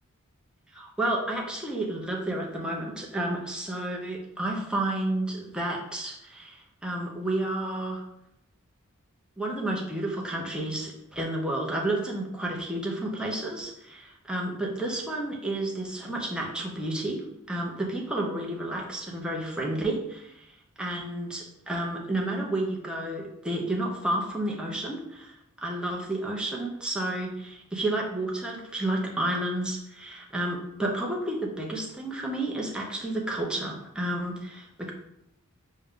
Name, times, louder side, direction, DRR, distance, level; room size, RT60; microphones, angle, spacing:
voice 1, 0.7-8.0 9.4-20.5 20.8-34.9, right 1 dB, 5° right, -1 dB, 0.7 m, -31 dB
6.4 x 2.3 x 3.7 m, 0.82 s
head